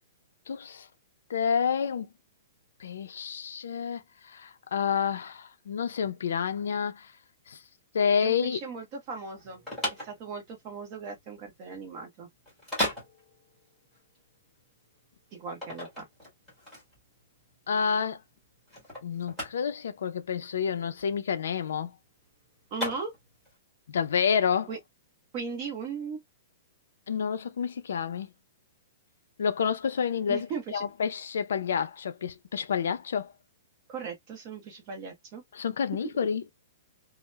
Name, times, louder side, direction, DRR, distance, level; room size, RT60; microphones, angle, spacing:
voice 1, 0.5-0.9 1.3-2.1 2.8-7.1 7.5-7.6 7.9-8.6 17.7-18.2 19.0-21.9 23.9-24.7 27.1-28.3 29.4-33.3 35.5-36.4, left 7 dB, 75° left, 0.4 m, -29 dB
voice 2, 8.2-9.6 9.9-12.3 15.3-16.1 22.7-23.1 24.7-24.8 25.3-26.2 30.3-30.8 33.9-35.4, right 5 dB, 25° right, 0.8 m, -38 dB
sound 1, 9.3-23.6, left 1 dB, ahead, 1.5 m, -37 dB
2.8 x 2.0 x 2.2 m
hypercardioid pair, 175°, 0 cm